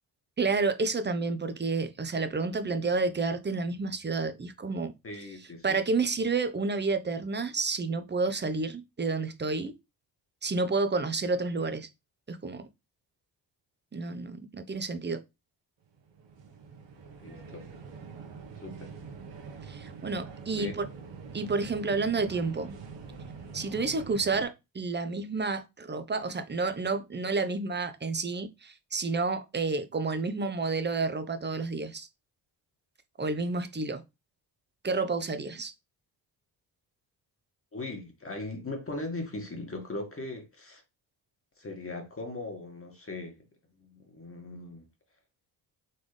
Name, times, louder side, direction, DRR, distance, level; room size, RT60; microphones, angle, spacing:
voice 1, 0.4-4.9 5.6-9.7 10.4-11.9 12.3-12.6 13.9-15.2 19.7-20.9 21.3-22.7 23.5-32.1 33.2-34.0 34.8-35.7, right 3 dB, 20° right, 0.9 m, -30 dB
voice 2, 5.0-5.8 17.2-17.7 18.6-18.9 20.5-20.9 37.7-40.8 41.6-43.5 43.8-44.9, left 2 dB, 25° left, 1.7 m, -39 dB
sound 1, 15.8-24.4, right 5 dB, 60° right, 1.4 m, -45 dB
4.2 x 3.5 x 3.3 m
supercardioid pair, 55°, 49 cm